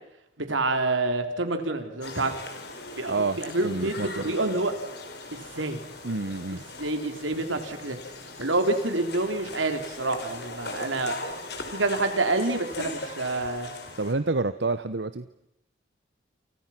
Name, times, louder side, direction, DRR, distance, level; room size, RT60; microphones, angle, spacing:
voice 1, 0.4-2.3 3.0-4.7 5.3-5.8 6.7-8.0 8.4-11.2 11.7-13.7, right 2 dB, 85° right, 6 dB, 4.0 m, -27 dB
sound 1, 2.0-14.1, left 2 dB, 55° left, 4.6 m, -40 dB
voice 2, 3.1-4.2 6.0-6.6 14.0-15.3, right 3 dB, 65° right, 12 dB, 0.9 m, -28 dB
29.5 x 29.0 x 6.0 m, 0.86 s
head